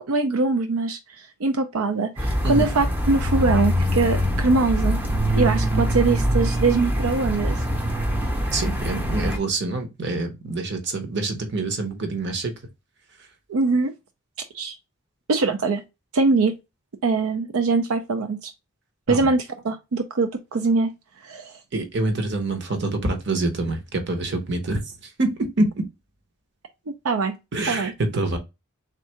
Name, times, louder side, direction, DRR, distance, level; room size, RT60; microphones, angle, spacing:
voice 1, 0.0-5.0 5.3-7.6 13.5-13.9 14.5-14.8 15.3-15.8 16.1-16.5 17.0-18.5 19.1-20.9 21.2-21.5 27.0-27.4 27.7-27.9, right 3 dB, 90° right, 0.5 m, -22 dB
sound 1, 2.2-9.4, equal, 10° right, 0.6 m, -23 dB
voice 2, 8.5-12.5 19.1-19.3 21.7-25.8 27.5-28.4, right 2 dB, 55° right, 0.8 m, -26 dB
3.6 x 2.4 x 4.2 m
head